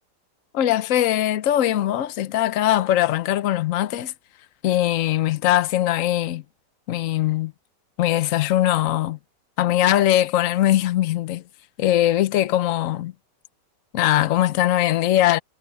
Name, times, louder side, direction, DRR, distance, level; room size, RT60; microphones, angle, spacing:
voice 1, 0.5-4.1 4.6-6.4 6.9-7.5 8.0-9.2 9.6-11.4 11.8-13.1 13.9-15.4, left 13 dB, 55° left, 1.0 m, -21 dB
omnidirectional pair, 1.9 m